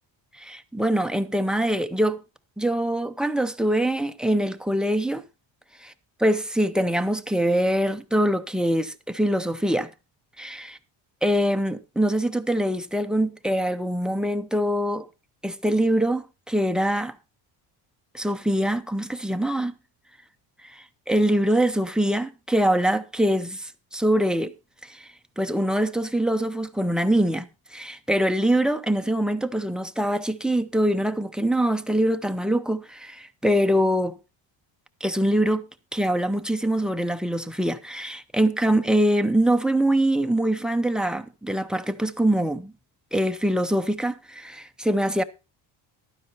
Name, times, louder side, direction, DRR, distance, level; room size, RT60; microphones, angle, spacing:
voice 1, 0.4-2.2 2.6-5.2 5.8-5.9 6.2-9.9 10.4-10.8 11.2-15.1 15.4-17.1 18.1-19.7 20.6-24.5 24.8-25.1 25.4-34.2 35.0-35.7 35.9-42.7 43.1-45.2, right 1 dB, ahead, 0.5 m, -24 dB
11.5 x 9.7 x 4.2 m
cardioid pair, 130°, 48 cm